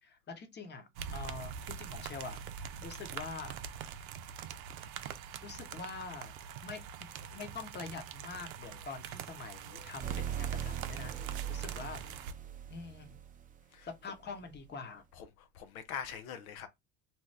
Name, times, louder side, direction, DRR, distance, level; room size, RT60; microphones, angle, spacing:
voice 1, 0.0-3.6 5.4-6.3 6.6-11.1 11.5-12.0 12.7-13.2 14.0-15.0, left 4 dB, 25° left, 0.9 m, -45 dB
sound 1, 1.0-12.3, right 8 dB, 80° right, 0.6 m, -44 dB
sound 2, 10.0-13.6, right 9 dB, 20° right, 0.5 m, -39 dB
voice 2, 15.2-16.7, left 8 dB, 80° left, 0.6 m, -43 dB
2.8 x 2.2 x 3.3 m
hypercardioid pair, 80°, 41 cm